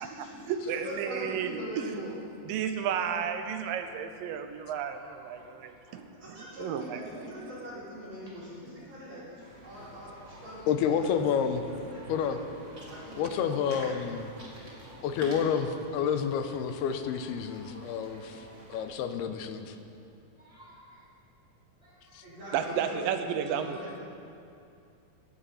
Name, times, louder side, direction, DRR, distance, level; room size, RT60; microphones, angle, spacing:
voice 1, 0.0-2.2 5.9-13.7 22.2-24.0, equal, 45° right, -9 dB, 5.3 m, -42 dB
voice 2, 0.7-1.5 2.5-6.1 6.6-6.8 22.5-23.8, right 8 dB, 75° right, 8 dB, 2.2 m, -32 dB
voice 3, 4.9-6.0 7.3-7.5 8.3-8.4 10.3-10.5 19.3-19.4 19.8-19.9 20.4-21.1 21.7-22.9 23.4-23.9, equal, 10° left, -7 dB, 4.5 m, -55 dB
sound 1, 9.4-18.8, right 1 dB, 20° right, 2.2 m, -47 dB
voice 4, 10.7-11.6 12.1-12.4 13.2-14.3 15.0-19.8 22.1-22.2, left 7 dB, 90° left, 8 dB, 2.8 m, -29 dB
17.5 x 15.5 x 4.2 m, 2.5 s
omnidirectional pair, 4.5 m